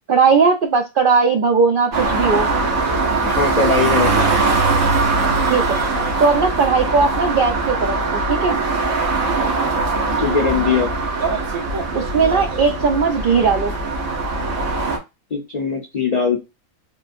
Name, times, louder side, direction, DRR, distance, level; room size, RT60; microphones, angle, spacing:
voice 1, 0.1-2.5 5.5-8.0 8.3-8.6 11.9-13.7, right 5 dB, 65° right, 3 dB, 0.5 m, -18 dB
sound 1, 1.9-15.0, right 3 dB, 90° right, 1.3 m, -21 dB
voice 2, 3.2-4.1 10.2-10.9 15.3-16.4, left 5 dB, 45° left, 1 dB, 0.5 m, -20 dB
3.6 x 2.5 x 2.4 m, 0.24 s
omnidirectional pair, 1.4 m